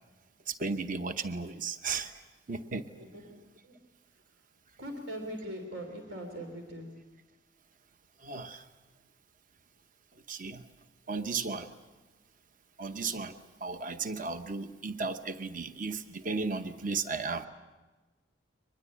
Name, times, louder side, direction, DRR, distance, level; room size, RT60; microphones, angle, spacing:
voice 1, 0.5-2.2 2.5-2.9 8.2-8.6 10.3-10.7 11.1-11.7 12.8-17.5, right 4 dB, 45° right, 9 dB, 0.9 m, -35 dB
voice 2, 2.9-3.4 3.6-3.8 4.8-7.0, equal, 80° right, 4 dB, 3.3 m, -41 dB
24.0 x 21.0 x 8.4 m, 1.2 s
head